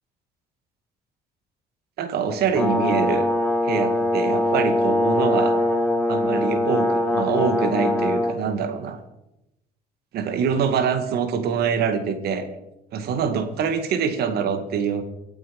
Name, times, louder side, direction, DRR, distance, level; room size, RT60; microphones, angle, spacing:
voice 1, 2.0-3.3 3.6-5.5 6.1-9.0 10.1-12.5 12.9-15.0, right 6 dB, 70° right, 8 dB, 2.2 m, -24 dB
Brass instrument, 2.5-8.3, left 1 dB, 10° left, 3.8 m, -22 dB
24.5 x 8.7 x 5.4 m, 0.89 s
cardioid pair, 110°, 17 cm